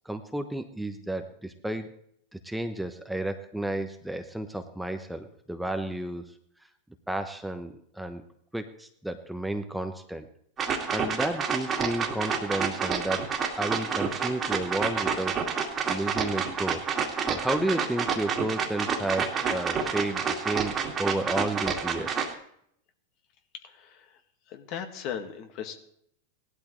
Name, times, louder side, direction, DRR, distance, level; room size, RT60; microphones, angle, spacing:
voice 1, 0.1-1.9 2.4-6.2 7.1-8.2 8.5-10.3 10.9-13.3 13.6-15.3 15.9-16.8 17.3-22.1, right 1 dB, 5° right, 7 dB, 0.9 m, -32 dB
sound 1, 10.6-22.3, right 6 dB, 25° right, 2.2 m, -29 dB
voice 2, 23.6-24.1 24.5-25.8, left 8 dB, 50° left, 6 dB, 1.8 m, -37 dB
18.0 x 12.0 x 3.2 m, 0.69 s
hypercardioid pair, 100°, 0 cm